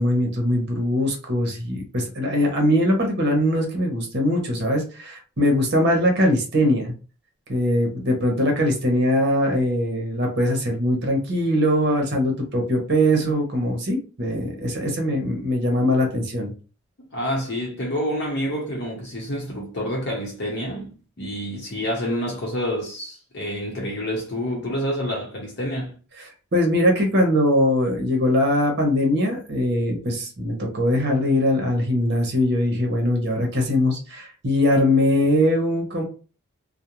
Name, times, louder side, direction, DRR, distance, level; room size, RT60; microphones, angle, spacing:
voice 1, 0.0-6.9 7.5-16.5 26.2-26.3 26.5-36.0, left 1 dB, 55° right, 0.9 m, -21 dB
voice 2, 17.1-25.9, equal, 55° left, 0.7 m, -28 dB
2.5 x 2.1 x 2.9 m
head